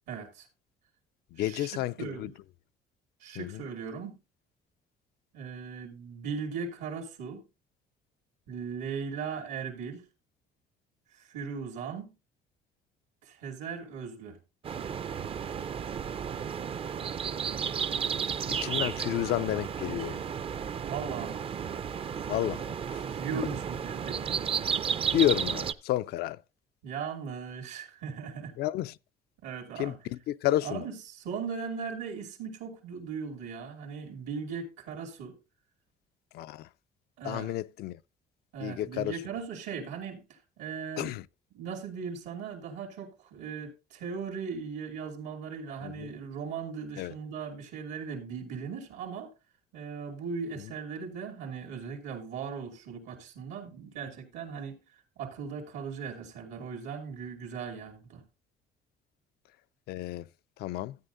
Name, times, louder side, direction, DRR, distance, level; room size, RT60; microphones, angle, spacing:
voice 1, 0.1-0.5 1.4-2.3 3.2-4.2 5.3-7.5 8.5-10.0 11.2-12.1 13.2-14.4 20.8-21.4 23.1-24.4 26.8-28.5 29.4-30.0 30.6-35.4 37.2-37.5 38.5-41.2 41.5-49.3 49.7-54.8 55.2-58.2, right 6 dB, 85° right, 2.7 m, -38 dB
voice 2, 1.3-2.3 3.4-3.6 18.5-20.2 22.3-22.7 22.9-23.0 25.1-26.4 28.6-28.9 29.8-30.8 36.3-36.7 37.2-38.0 38.6-39.2 41.0-41.2 45.8-46.1 47.0-47.1 59.9-60.2 60.6-61.0, left 14 dB, 70° left, 0.4 m, -31 dB
sound 1, 14.6-25.7, right 7 dB, 35° right, 0.4 m, -33 dB
13.5 x 9.0 x 2.6 m
cardioid pair, 110°, 17 cm